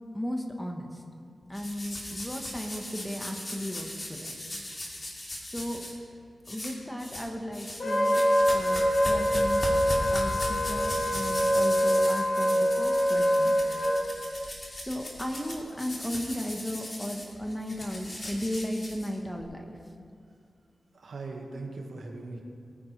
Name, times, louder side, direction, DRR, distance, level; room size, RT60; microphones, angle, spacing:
voice 1, 0.1-0.9 1.5-4.4 5.5-5.8 6.5-8.2 8.5-9.6 10.1-13.5 14.8-19.8, equal, 5° left, 2 dB, 1.2 m, -35 dB
sound 1, 1.5-5.9 6.4-7.3 7.5-19.4, left 1 dB, 35° left, 2.5 m, -38 dB
Wind instrument woodwind instrument, 7.8-14.0, equal, 50° left, 3.2 m, -24 dB
voice 2, 20.9-22.4, right 3 dB, 75° right, 1 dB, 1.7 m, -39 dB
21.5 x 9.7 x 3.3 m, 2.4 s
wide cardioid pair, 100°, 0 cm